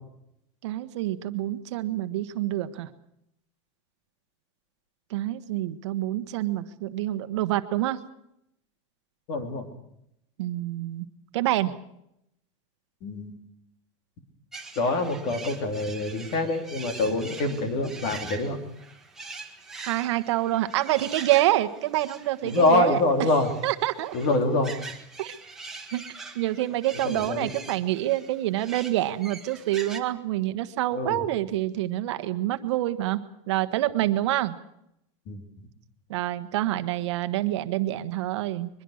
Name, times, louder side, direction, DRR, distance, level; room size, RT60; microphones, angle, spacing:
voice 1, 0.6-2.9 5.1-8.0 10.4-11.0 11.3-11.7 19.8-23.0 23.6-24.2 25.2-25.3 25.9-26.0 26.3-34.6 36.1-38.7, right 15 dB, 60° right, 10 dB, 1.3 m, -27 dB
voice 2, 9.3-9.6 13.0-13.3 14.8-18.6 22.4-23.5 24.1-24.7 27.0-27.5 30.9-31.2 35.3-35.4, left 2 dB, 35° left, 6 dB, 3.1 m, -25 dB
sound 1, 14.5-30.0, right 4 dB, 5° right, 1.6 m, -43 dB
23.0 x 22.0 x 6.5 m, 0.78 s
supercardioid pair, 180°, 16 cm